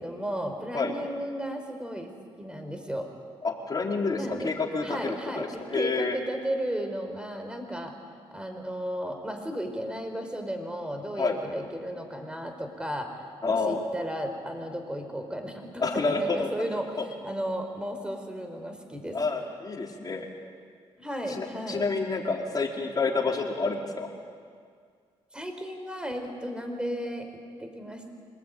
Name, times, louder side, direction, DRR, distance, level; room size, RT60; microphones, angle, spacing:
voice 1, 0.0-2.1 2.4-3.1 4.1-4.5 4.8-7.9 8.3-13.1 13.5-16.9 17.2-19.2 21.0-21.9 25.3-27.3 27.6-28.1, equal, 10° right, 5 dB, 4.7 m, -34 dB
voice 2, 3.4-6.2 11.2-11.4 13.4-13.8 15.8-16.5 17.0-17.1 19.1-20.2 21.3-24.1, left 4 dB, 40° left, -1 dB, 4.5 m, -29 dB
26.0 x 20.0 x 9.4 m, 2.1 s
cardioid pair, 75°, 11 cm